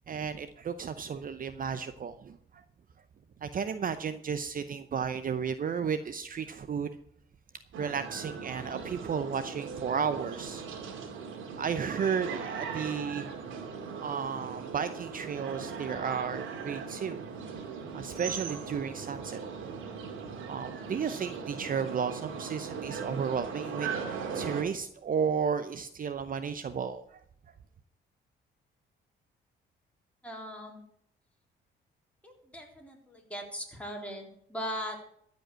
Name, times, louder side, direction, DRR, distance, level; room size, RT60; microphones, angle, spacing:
voice 1, 0.1-2.6 3.4-6.9 7.8-10.6 11.6-13.3 14.0-17.2 17.9-19.7 20.5-27.2, right 6 dB, 45° right, 11 dB, 0.7 m, -33 dB
sound 1, 7.7-24.6, right 6 dB, 85° right, 2.2 m, -39 dB
voice 2, 30.2-30.8 32.2-35.0, equal, 5° left, 0 dB, 3.6 m, -39 dB
14.0 x 5.4 x 8.8 m, 0.68 s
cardioid pair, 90°, 20 cm